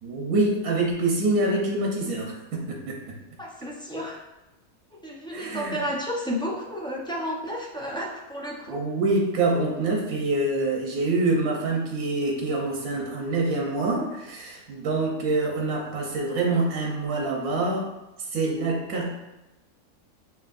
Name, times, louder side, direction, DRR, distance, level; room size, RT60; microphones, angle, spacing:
voice 1, 0.0-3.2 5.3-5.8 8.7-17.9 18.2-19.1, right 2 dB, 85° right, -1 dB, 1.3 m, -26 dB
voice 2, 3.4-4.2 5.0-8.8, equal, 5° left, -5 dB, 0.4 m, -32 dB
7.2 x 3.0 x 2.5 m, 0.99 s
omnidirectional pair, 1.5 m